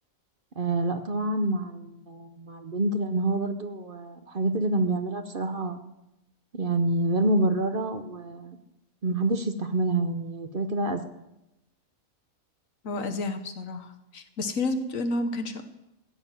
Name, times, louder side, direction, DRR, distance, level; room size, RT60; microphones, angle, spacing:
voice 1, 0.6-5.8 6.5-8.6 9.0-11.0, right 2 dB, 45° right, 7 dB, 1.0 m, -27 dB
voice 2, 12.8-15.6, left 2 dB, 70° left, 8 dB, 1.6 m, -30 dB
15.0 x 7.0 x 9.4 m, 0.90 s
omnidirectional pair, 1.4 m